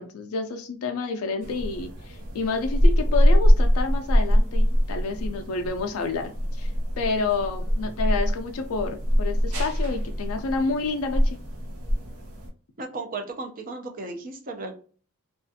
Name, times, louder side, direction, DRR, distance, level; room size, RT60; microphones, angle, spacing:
voice 1, 0.0-11.4, left 4 dB, 70° left, 5 dB, 0.3 m, -29 dB
sound 1, 1.4-12.5, equal, 75° right, 0.7 m, -23 dB
voice 2, 12.8-14.7, right 3 dB, 40° right, 5 dB, 0.5 m, -35 dB
2.4 x 2.3 x 2.6 m, 0.40 s
head